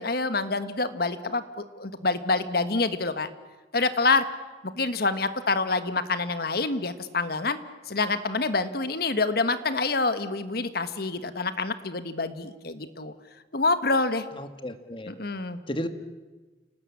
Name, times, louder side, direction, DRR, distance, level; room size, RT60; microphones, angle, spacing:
voice 1, 0.0-3.3 3.7-4.2 4.6-7.6 7.9-13.1 13.5-14.2 15.1-15.6, left 3 dB, 55° left, 11 dB, 1.4 m, -27 dB
voice 2, 14.4-15.1 15.7-15.9, equal, 30° left, 9 dB, 1.7 m, -33 dB
29.5 x 19.0 x 8.6 m, 1.3 s
head